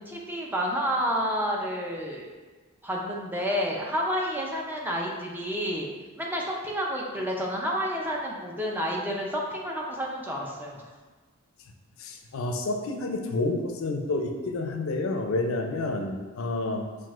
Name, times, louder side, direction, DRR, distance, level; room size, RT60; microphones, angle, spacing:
voice 1, 0.0-2.3 2.8-5.9 6.2-10.8, equal, 10° right, -2 dB, 0.4 m, -30 dB
voice 2, 12.0-16.8, left 2 dB, 75° left, 4 dB, 0.4 m, -29 dB
5.9 x 2.5 x 2.4 m, 1.3 s
head